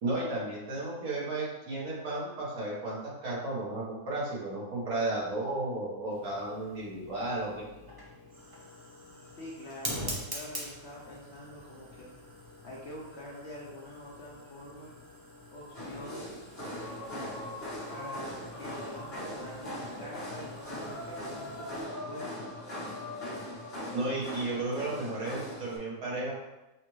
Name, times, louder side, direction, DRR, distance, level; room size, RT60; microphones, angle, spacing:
voice 1, 0.0-7.7 23.9-26.3, right 2 dB, 70° right, -5 dB, 1.7 m, -33 dB
Fire, 6.1-21.8, equal, 40° right, 0.3 m, -45 dB
voice 2, 9.4-12.1 12.6-14.9 15.5-16.4 17.1-17.4 17.9-22.5, left 1 dB, 55° left, -4 dB, 0.8 m, -45 dB
sound 1, 15.7-25.8, left 1 dB, 40° left, 1.3 m, -40 dB
5.9 x 2.5 x 3.1 m, 1.0 s
omnidirectional pair, 1.7 m